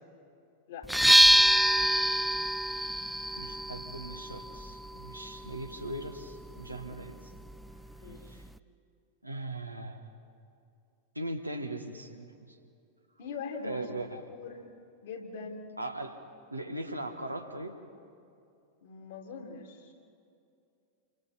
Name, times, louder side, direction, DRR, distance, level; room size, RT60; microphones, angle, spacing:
sound 1, 0.8-8.6, equal, ahead, 0.6 m, -27 dB
voice 1, 3.3-7.3 8.2-8.4 9.2-10.0 11.1-12.6 13.6-14.3 15.8-16.2 16.5-17.8, right 1 dB, 85° right, 5 dB, 1.5 m, -39 dB
voice 2, 13.2-13.8 14.1-14.6 15.0-15.7 18.8-19.9, left 5 dB, 60° left, 1 dB, 3.2 m, -42 dB
28.5 x 24.0 x 4.4 m, 2.5 s
figure-of-eight pair, 90°, 0 cm